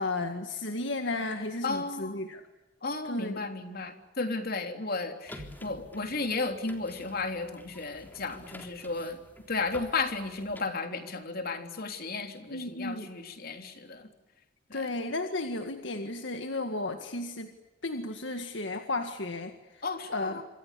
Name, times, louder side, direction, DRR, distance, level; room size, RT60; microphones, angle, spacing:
voice 1, 0.0-2.4 3.0-3.4 12.5-13.1 14.7-17.5 17.8-19.8 20.1-20.4, left 2 dB, 70° left, 6 dB, 2.0 m, -34 dB
voice 2, 1.6-2.2 2.8-9.2 9.5-14.1 14.7-14.9 19.8-20.4, left 3 dB, 55° left, 6 dB, 3.5 m, -34 dB
sound 1, 5.3-10.6, left 1 dB, 10° left, 3.6 m, -49 dB
26.5 x 26.0 x 8.4 m, 1.1 s
head